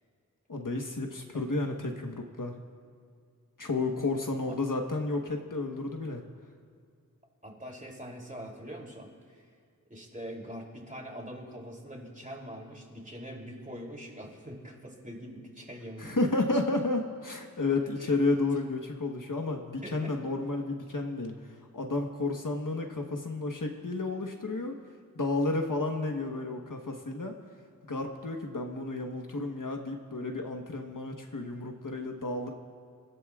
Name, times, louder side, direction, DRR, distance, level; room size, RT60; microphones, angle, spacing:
voice 1, 0.5-2.5 3.6-6.2 16.0-24.8 25.1-27.3 27.8-32.5, left 2 dB, 65° left, 2 dB, 1.3 m, -31 dB
voice 2, 7.4-9.4 9.9-16.2 18.0-18.1 19.8-20.2, equal, 20° right, 0 dB, 3.2 m, -43 dB
27.5 x 15.5 x 2.4 m, 2.2 s
wide cardioid pair, 45°, 35 cm